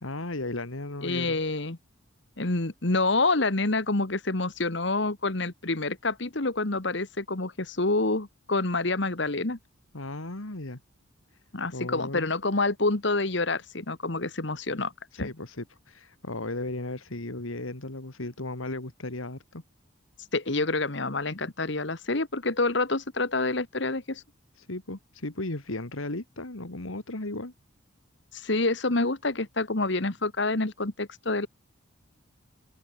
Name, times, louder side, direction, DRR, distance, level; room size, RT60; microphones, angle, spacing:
voice 1, 0.0-1.4 9.9-10.8 11.7-12.3 15.1-19.6 24.6-27.5, left 2 dB, 85° left, 2.5 m, -35 dB
voice 2, 1.0-1.8 2.4-9.6 11.5-14.9 15.2-15.3 20.3-24.2 28.3-31.5, left 2 dB, 60° left, 1.6 m, -27 dB
open air
head